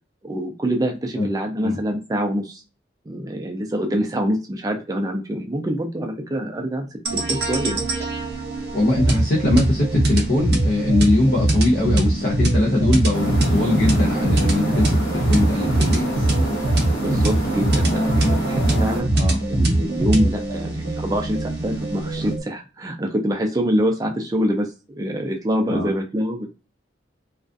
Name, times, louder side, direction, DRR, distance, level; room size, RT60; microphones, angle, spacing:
voice 1, 0.2-2.6 3.1-6.9 7.1-7.9 17.0-19.1 19.5-26.5, equal, 20° right, 3 dB, 0.4 m, -25 dB
sound 1, 7.1-22.4, right 1 dB, 60° right, 0.6 m, -22 dB
voice 2, 8.7-16.3 19.2-19.4 25.7-25.9, left 2 dB, 55° left, -3 dB, 0.6 m, -21 dB
sound 2, 13.1-19.0, equal, 70° left, 0.9 m, -26 dB
2.4 x 2.2 x 2.5 m, 0.33 s
head